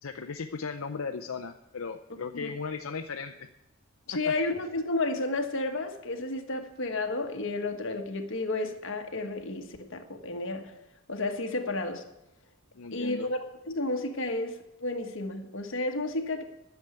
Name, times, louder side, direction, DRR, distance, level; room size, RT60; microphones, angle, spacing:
voice 1, 0.0-3.5 4.2-4.3 12.7-13.3, left 5 dB, 80° left, 0.6 m, -36 dB
voice 2, 4.1-10.7 11.1-12.1 12.9-13.4 13.7-16.4, left 2 dB, 65° left, 1.4 m, -32 dB
11.0 x 7.2 x 9.1 m
head